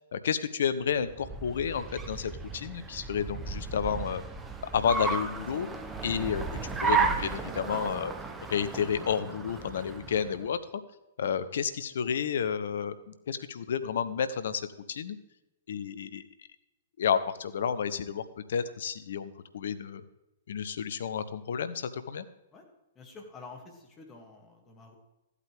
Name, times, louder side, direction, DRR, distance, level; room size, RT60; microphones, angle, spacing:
voice 1, 0.1-4.2 4.7-5.7 6.0-8.1 8.5-10.6 11.2-15.2 15.7-16.2 17.0-18.2 18.5-20.0 20.5-22.2, left 7 dB, 60° left, 13 dB, 0.7 m, -31 dB
Car, 0.9-10.5, right 4 dB, 15° right, 0.9 m, -34 dB
voice 2, 22.9-25.0, left 4 dB, 20° left, 1 dB, 2.3 m, -49 dB
14.0 x 8.3 x 3.5 m, 0.97 s
figure-of-eight pair, 110°, 0 cm